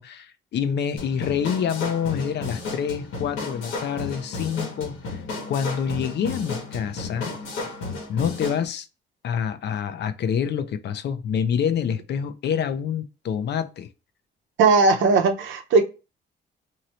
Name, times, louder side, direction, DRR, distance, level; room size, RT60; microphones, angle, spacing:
voice 1, 0.0-7.3 8.1-8.9 9.2-13.9, left 8 dB, 60° left, 0.5 m, -27 dB
sound 1, 1.0-8.6, left 3 dB, 90° left, 1.1 m, -33 dB
voice 2, 14.6-15.8, right 4 dB, 80° right, 0.8 m, -18 dB
3.0 x 2.7 x 2.7 m
cardioid pair, 90°, 20 cm